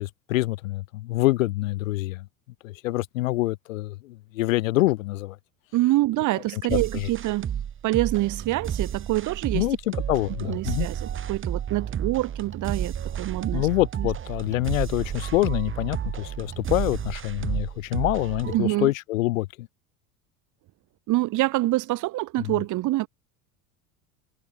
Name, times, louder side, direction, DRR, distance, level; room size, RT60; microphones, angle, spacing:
voice 1, 0.0-2.3 2.6-5.4 6.5-7.1 9.5-10.9 13.5-19.7 22.4-22.6, left 18 dB, 60° left, 2.0 m, -26 dB
voice 2, 5.7-7.6 7.8-9.7 10.5-13.7 14.0-14.1 18.5-18.9 21.1-23.1, right 18 dB, 45° right, 1.8 m, -26 dB
sound 1, 6.7-18.6, right 9 dB, 30° right, 2.2 m, -31 dB
figure-of-eight pair, 70°, 44 cm